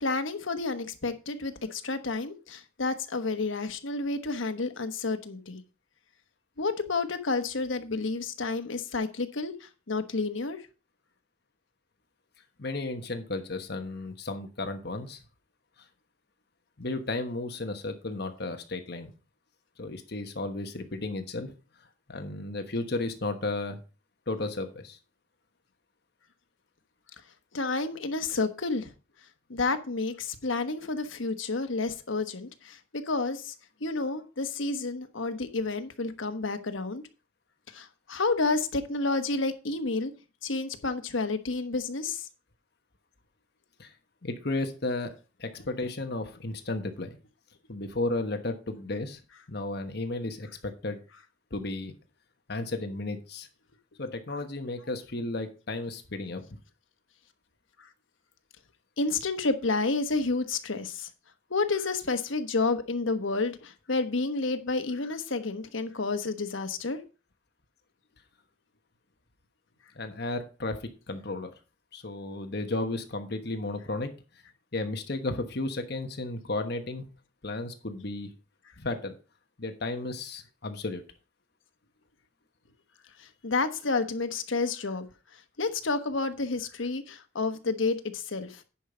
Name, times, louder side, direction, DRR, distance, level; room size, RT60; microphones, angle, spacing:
voice 1, 0.0-5.6 6.6-10.6 27.5-28.9 29.5-33.5 33.8-37.0 37.7-40.1 40.4-42.3 57.8-57.9 59.0-61.1 61.5-67.0 83.2-85.1 85.3-88.6, left 3 dB, 85° left, 1.2 m, -30 dB
voice 2, 12.6-15.2 16.8-19.1 19.8-21.5 22.1-23.8 24.3-25.0 43.8-43.9 44.2-45.1 45.4-47.2 47.7-49.2 49.5-51.0 51.5-51.9 52.5-53.5 54.0-56.6 69.9-71.5 71.9-74.1 74.7-77.0 77.4-78.3 78.8-79.1 79.6-81.0, left 2 dB, 55° left, 1.2 m, -33 dB
10.0 x 5.6 x 5.0 m
head